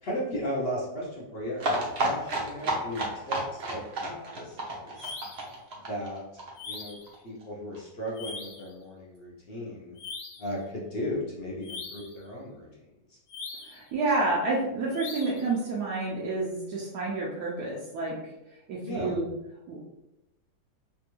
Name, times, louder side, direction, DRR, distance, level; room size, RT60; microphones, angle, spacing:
voice 1, 0.0-5.1 5.9-7.0 7.2-10.0 10.4-12.7 13.1-13.2 18.8-19.2, equal, 60° left, -4 dB, 0.6 m, -36 dB
sound 1, 1.6-7.1 7.4-7.5 7.7-7.8 8.1-8.2, right 1 dB, 55° right, 0.7 m, -31 dB
sound 2, 5.0-5.5 6.6-7.1 8.1-8.7 10.0-10.5 11.6-12.2 13.3-13.9 14.9-15.5, left 4 dB, 80° left, 1.2 m, -41 dB
voice 2, 13.6-18.2 18.7-19.3 19.7-19.8, right 3 dB, 75° right, -4 dB, 1.1 m, -29 dB
3.3 x 2.3 x 2.9 m, 0.91 s
omnidirectional pair, 1.8 m